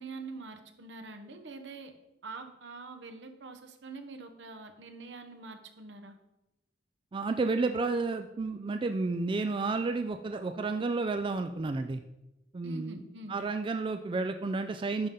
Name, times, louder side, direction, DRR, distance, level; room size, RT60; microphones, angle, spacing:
voice 1, 0.0-1.9 2.2-6.2 12.6-13.4, right 3 dB, 75° right, 6 dB, 0.9 m, -45 dB
voice 2, 7.1-12.0 12.5-13.0 13.3-15.1, right 3 dB, 30° right, 8 dB, 0.3 m, -31 dB
10.5 x 3.8 x 5.7 m, 0.94 s
head